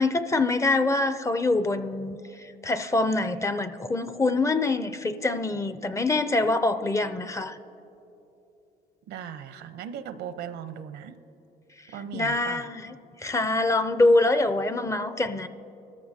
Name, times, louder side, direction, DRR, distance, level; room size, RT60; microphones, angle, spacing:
voice 1, 0.0-2.2 2.6-7.6 12.1-12.9 13.2-15.5, left 2 dB, 20° left, 11 dB, 0.4 m, -24 dB
voice 2, 9.1-11.1 11.9-12.8, right 8 dB, 80° right, 11 dB, 0.7 m, -38 dB
24.0 x 13.5 x 2.8 m, 2.9 s
cardioid pair, 110°, 17 cm